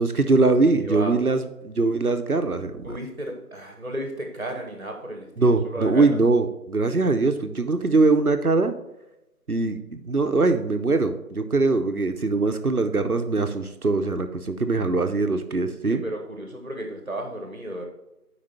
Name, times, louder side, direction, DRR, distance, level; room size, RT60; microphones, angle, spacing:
voice 1, 0.0-2.9 5.4-8.7 9.5-16.0, right 3 dB, 65° right, 8 dB, 1.0 m, -22 dB
voice 2, 0.8-1.2 2.8-6.1 15.8-17.8, right 1 dB, 45° right, 3 dB, 1.4 m, -34 dB
8.6 x 5.1 x 4.3 m, 0.93 s
figure-of-eight pair, 170°, 48 cm